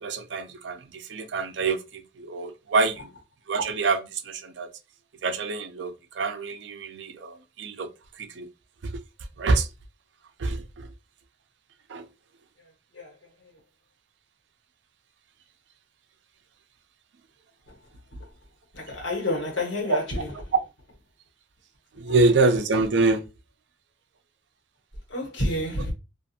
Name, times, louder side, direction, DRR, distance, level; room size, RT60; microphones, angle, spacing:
voice 1, 0.0-3.1 3.5-4.7 5.2-7.9 8.2-8.5 8.8-8.9 9.4-9.7 10.4-10.9 11.9-12.1 19.9-20.0 22.0-23.2, right 3 dB, 75° right, 0.5 m, -26 dB
voice 2, 18.7-20.3 25.1-25.9, left 1 dB, 80° left, 1.3 m, -29 dB
2.5 x 2.4 x 2.6 m
head